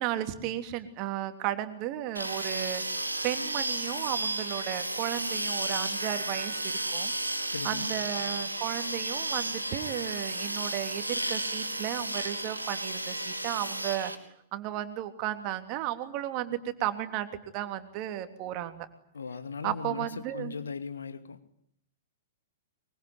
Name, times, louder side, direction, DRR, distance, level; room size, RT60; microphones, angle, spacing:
voice 1, 0.0-2.8 3.2-7.1 7.6-14.1 14.5-17.3 17.5-18.9 19.6-20.5, right 13 dB, 40° right, 8 dB, 3.1 m, -34 dB
sound 1, 2.1-14.1, right 2 dB, 90° right, 3.1 m, -33 dB
voice 2, 7.5-7.9 19.1-21.4, left 5 dB, 75° left, 10 dB, 2.5 m, -38 dB
24.0 x 24.0 x 9.7 m, 0.71 s
figure-of-eight pair, 105°, 0 cm